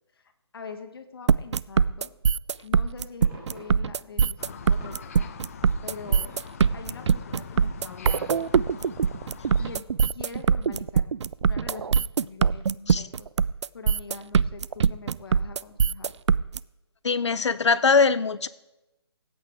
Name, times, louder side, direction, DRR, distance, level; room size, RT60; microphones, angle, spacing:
voice 1, 0.1-2.1 2.6-5.3 5.8-6.3 6.7-8.5 9.6-11.1 11.4-13.5 13.7-16.1, left 5 dB, 55° left, 5 dB, 1.4 m, -43 dB
sound 1, 1.3-16.6, right 6 dB, 80° right, 0.4 m, -22 dB
sound 2, 2.2-2.3 2.8-7.4, right 2 dB, 10° right, 3.5 m, -51 dB
sound 3, 4.4-9.8, left 7 dB, 30° left, 0.8 m, -43 dB
voice 2, 17.0-18.5, left 4 dB, 80° left, 15 dB, 0.7 m, -21 dB
18.5 x 8.7 x 3.5 m, 0.96 s
hypercardioid pair, 165°, 15 cm